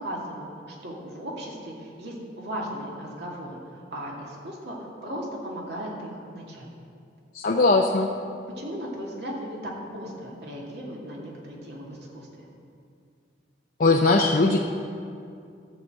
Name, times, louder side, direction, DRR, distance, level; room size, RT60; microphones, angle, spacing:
voice 1, 0.0-6.7 8.6-12.5, equal, 65° right, -3 dB, 2.3 m, -37 dB
voice 2, 7.3-8.1 13.8-14.6, left 3 dB, 50° left, 1 dB, 0.6 m, -19 dB
14.0 x 5.0 x 7.7 m, 2.4 s
head